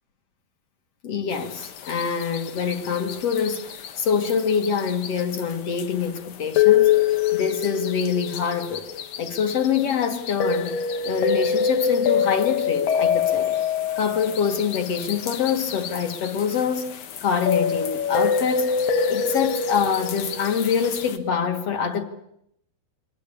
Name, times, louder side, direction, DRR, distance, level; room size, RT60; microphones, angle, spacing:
voice 1, 1.0-6.9 7.3-8.9 9.2-10.8 11.0-13.6 14.0-18.7 19.1-22.0, left 7 dB, 50° left, 2.3 m, -25 dB
sound 1, 1.3-21.2, left 7 dB, 70° left, 3.2 m, -25 dB
27.0 x 23.0 x 8.5 m
omnidirectional pair, 4.3 m